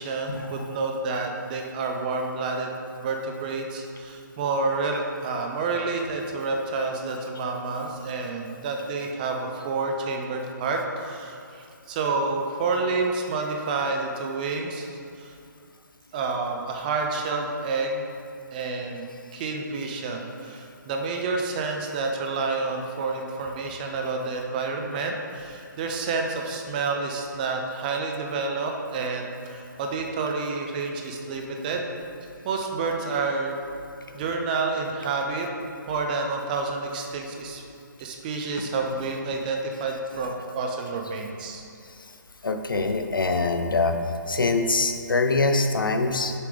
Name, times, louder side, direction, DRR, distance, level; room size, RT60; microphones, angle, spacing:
voice 1, 0.0-11.6 11.9-15.3 16.1-18.1 18.5-19.1 19.3-31.9 32.4-33.6 34.1-35.5 35.9-37.6 38.0-41.6, right 3 dB, 25° right, 2 dB, 0.5 m, -29 dB
voice 2, 42.4-44.0 44.3-46.3, left 3 dB, 90° left, 6 dB, 0.6 m, -24 dB
6.8 x 4.9 x 3.4 m, 2.5 s
hypercardioid pair, 150°, 11 cm